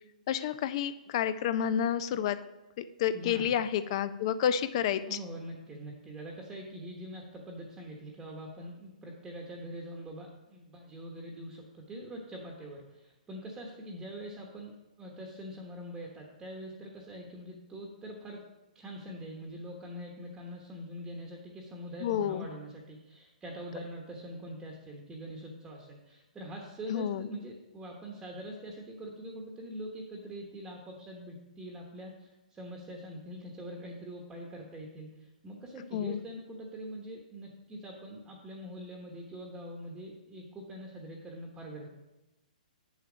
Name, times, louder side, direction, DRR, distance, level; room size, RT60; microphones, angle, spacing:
voice 1, 0.3-2.4 2.8-5.2 22.0-22.4 26.9-27.3 35.9-36.2, left 9 dB, 40° left, 14 dB, 0.5 m, -30 dB
voice 2, 3.1-3.5 5.0-18.4 18.7-41.9, equal, 10° right, 0 dB, 1.1 m, -44 dB
8.5 x 7.1 x 5.0 m, 0.98 s
hypercardioid pair, 150°, 5 cm